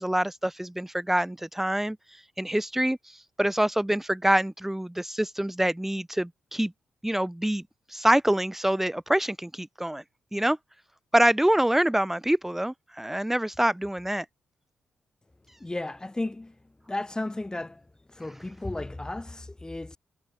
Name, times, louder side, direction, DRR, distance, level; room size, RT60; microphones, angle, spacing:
voice 1, 0.0-2.0 2.4-3.0 3.4-6.7 7.0-7.6 7.9-10.0 10.3-10.6 11.1-14.2, right 1 dB, 5° right, 0.9 m, -25 dB
voice 2, 15.6-16.5 16.9-17.8 18.1-20.0, left 2 dB, 20° left, 1.2 m, -34 dB
supercardioid pair, 45°, 4 cm